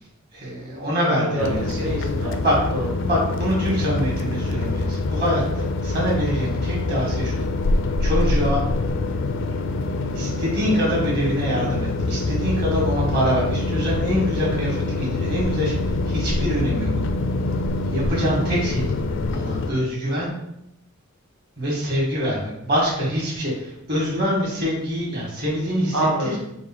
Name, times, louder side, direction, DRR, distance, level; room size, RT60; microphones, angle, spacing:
voice 1, 0.3-1.9 2.4-2.6 3.0-7.4 8.0-8.6 10.1-16.9 17.9-18.9 19.3-20.3 21.6-25.9, equal, 50° right, -4 dB, 1.7 m, -25 dB
voice 2, 1.0-2.3 2.7-2.9 17.5-17.6 25.9-26.4, right 1 dB, 65° right, -3 dB, 1.5 m, -26 dB
sound 1, 1.4-19.7, left 2 dB, 60° left, 0.4 m, -25 dB
4.6 x 2.4 x 4.4 m, 0.81 s
head